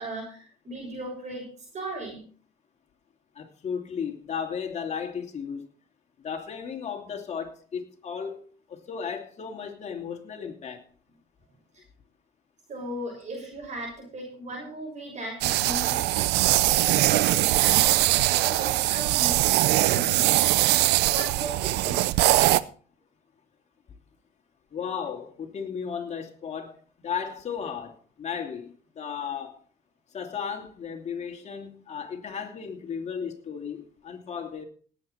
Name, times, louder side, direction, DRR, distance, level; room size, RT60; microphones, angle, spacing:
voice 1, 0.0-1.5 1.7-2.2 12.7-16.1 16.6-22.0, right 1 dB, 45° right, 6.5 m, -37 dB
voice 2, 3.3-5.7 6.2-10.8 24.7-26.8 27.0-29.6 30.1-34.6, left 7 dB, 40° left, 2.9 m, -35 dB
sound 1, 15.4-22.6, right 17 dB, 90° right, 0.6 m, -22 dB
18.5 x 8.3 x 4.4 m
cardioid pair, 110°, 17 cm